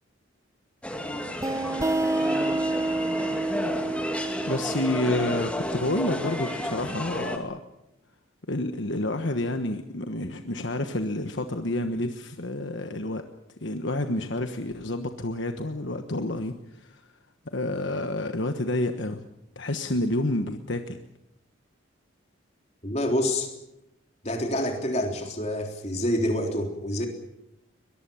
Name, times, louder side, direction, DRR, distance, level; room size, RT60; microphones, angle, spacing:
sound 1, 0.8-7.4, left 1 dB, 5° left, 2.2 m, -32 dB
sound 2, 1.4-6.8, right 2 dB, 15° right, 0.8 m, -29 dB
voice 1, 4.5-7.6 8.5-13.2 13.6-17.1 17.4-19.2 19.5-21.0, left 1 dB, 60° left, 7 dB, 1.3 m, -29 dB
voice 2, 22.8-23.5 24.2-27.1, left 1 dB, 35° left, 3 dB, 3.6 m, -27 dB
22.5 x 22.0 x 7.1 m, 0.85 s
head